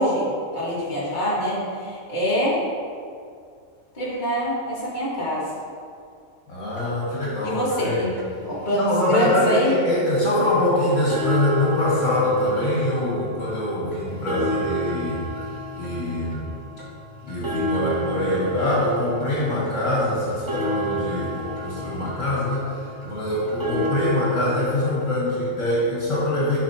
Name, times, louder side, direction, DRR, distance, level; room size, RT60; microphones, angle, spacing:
voice 1, 0.0-2.6 3.9-5.5 7.4-8.1 8.4-9.7, equal, 35° left, -9 dB, 2.2 m, -24 dB
voice 2, 6.5-8.0 8.7-15.2 15.8-16.4 17.2-26.6, left 1 dB, 60° left, -8 dB, 2.2 m, -24 dB
sound 1, 6.8-6.9 7.2-7.3 7.7-7.8 8.2-8.3 8.7-8.8 9.1-9.2 9.6-9.7 10.1-10.2 10.6-10.7 11.0-24.4, equal, 15° right, 1.3 m, -31 dB
12.0 x 5.7 x 2.8 m, 2.3 s
omnidirectional pair, 1.4 m